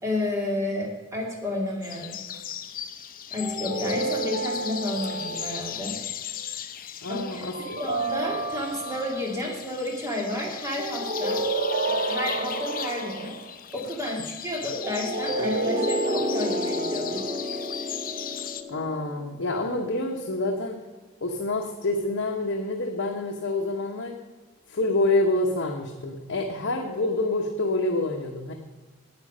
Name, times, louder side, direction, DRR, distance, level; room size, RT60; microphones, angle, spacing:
voice 1, 0.0-2.2 3.3-6.0 7.1-7.5 7.8-11.5 11.8-13.4 13.7-17.2, left 1 dB, 15° right, -1 dB, 2.4 m, -31 dB
sound 1, 1.8-18.6, left 9 dB, 45° left, 0.6 m, -37 dB
sound 2, 3.4-5.9 7.5-9.4 10.8-13.5 14.8-19.4, right 2 dB, 40° right, 1.1 m, -30 dB
voice 2, 7.0-7.8 18.7-20.8 21.2-24.2 24.7-28.5, left 2 dB, 65° left, 1 dB, 1.0 m, -27 dB
9.9 x 8.8 x 5.5 m, 1.3 s
head